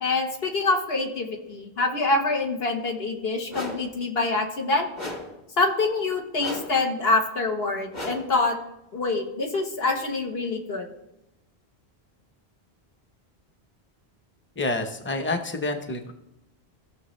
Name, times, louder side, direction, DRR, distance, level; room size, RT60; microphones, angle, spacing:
voice 1, 0.0-4.9 5.6-8.6 8.9-10.9, left 3 dB, 75° left, 2 dB, 1.6 m, -25 dB
sound 1, 3.5-4.0 5.0-5.4 6.4-6.9 7.9-8.4, left 1 dB, 30° left, 1.2 m, -35 dB
voice 2, 14.6-16.1, left 2 dB, 15° left, 5 dB, 0.7 m, -28 dB
15.5 x 6.3 x 3.2 m, 0.89 s
omnidirectional pair, 1.0 m